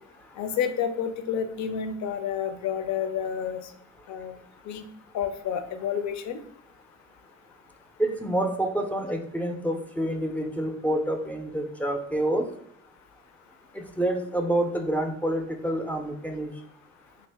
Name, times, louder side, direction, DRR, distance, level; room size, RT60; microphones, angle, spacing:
voice 1, 0.4-3.7 4.1-4.4 4.7-4.8 5.1-6.4, left 8 dB, 65° left, 9 dB, 0.5 m, -29 dB
voice 2, 8.0-12.5 13.7-16.5, right 1 dB, 5° left, 4 dB, 0.4 m, -28 dB
3.5 x 2.4 x 3.3 m, 0.72 s
cardioid pair, 90°, 30 cm